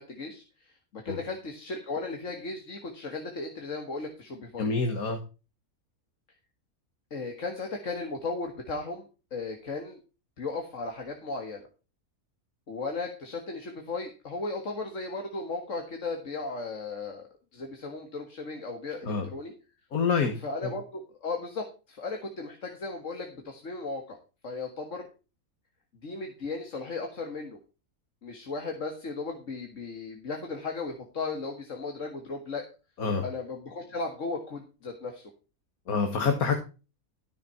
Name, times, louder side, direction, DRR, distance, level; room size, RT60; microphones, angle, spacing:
voice 1, 0.0-4.7 7.1-9.0 9.3-10.0 10.4-11.7 12.7-19.5 20.4-24.2 24.4-25.1 26.0-27.6 28.2-32.7 33.2-35.3, left 3 dB, 60° left, 3 dB, 2.1 m, -36 dB
voice 2, 4.6-5.2 19.0-19.3 19.9-20.4 20.6-20.7 33.0-33.2 35.9-36.5, left 5 dB, 80° left, 5 dB, 2.0 m, -26 dB
13.0 x 6.8 x 4.5 m, 0.32 s
omnidirectional pair, 1.5 m